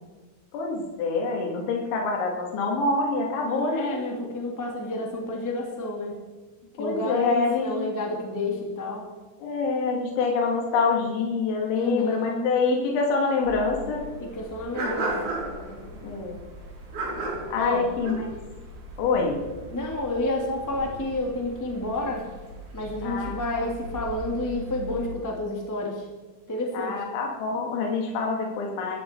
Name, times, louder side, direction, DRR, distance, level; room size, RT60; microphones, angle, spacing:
voice 1, 0.5-4.0 6.8-7.7 9.4-14.0 16.0-16.4 17.5-18.3 19.0-19.4 23.0-23.4 26.7-29.0, left 4 dB, 75° left, 0 dB, 4.6 m, -26 dB
voice 2, 3.4-6.1 6.8-9.0 11.7-12.5 14.2-15.2 17.5-17.9 19.7-22.3 22.7-26.0 26.5-27.0, left 2 dB, 5° left, 0 dB, 1.4 m, -30 dB
sound 1, 13.4-25.1, right 2 dB, 40° right, 5.4 m, -37 dB
19.5 x 14.5 x 4.6 m, 1.2 s
omnidirectional pair, 5.5 m